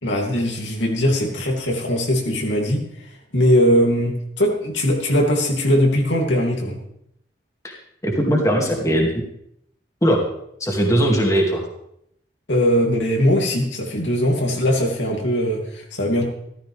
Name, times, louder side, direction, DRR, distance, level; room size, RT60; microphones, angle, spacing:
voice 1, 0.0-6.8 12.5-16.2, equal, 85° left, 0 dB, 2.8 m, -20 dB
voice 2, 8.0-9.1 10.0-10.2 10.6-11.6, equal, 20° left, 0 dB, 2.3 m, -19 dB
14.0 x 14.0 x 3.5 m, 0.75 s
head